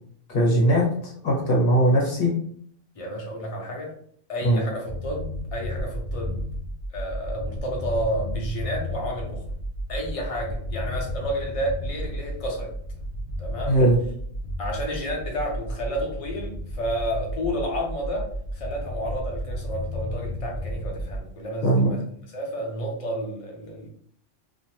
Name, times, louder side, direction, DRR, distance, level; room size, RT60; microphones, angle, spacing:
voice 1, 0.3-2.3 4.4-4.6 13.7-14.0 21.6-21.9, right 1 dB, 55° left, -3 dB, 1.0 m, -20 dB
voice 2, 3.0-3.9 4.3-6.4 6.9-9.4 9.9-12.7 13.4-13.8 14.6-22.0 22.3-23.9, equal, 35° left, -1 dB, 0.6 m, -31 dB
sound 1, 4.8-21.2, equal, 75° left, 1.0 m, -33 dB
2.6 x 2.0 x 2.9 m, 0.63 s
omnidirectional pair, 1.3 m